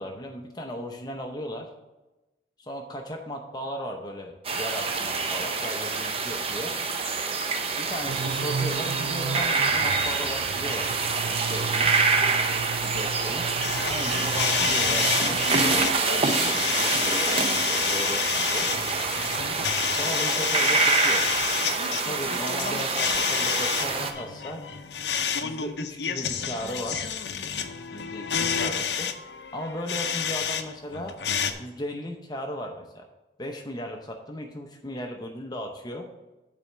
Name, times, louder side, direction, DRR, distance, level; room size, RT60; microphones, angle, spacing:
voice 1, 0.0-1.7 2.6-6.8 7.8-10.9 11.3-11.9 12.8-13.4 13.8-18.7 20.0-21.2 21.9-24.6 25.4-27.0 27.9-29.1 29.5-31.2 31.6-33.1 33.4-36.1, equal, 25° left, 3 dB, 0.6 m, -36 dB
sound 1, 4.4-24.1, right 4 dB, 35° right, 0.7 m, -26 dB
sound 2, 8.0-15.9, right 6 dB, 75° right, 0.3 m, -35 dB
sound 3, 13.6-30.6 30.9-31.5, left 7 dB, 75° left, 0.7 m, -29 dB
8.9 x 4.2 x 7.3 m, 1.1 s
head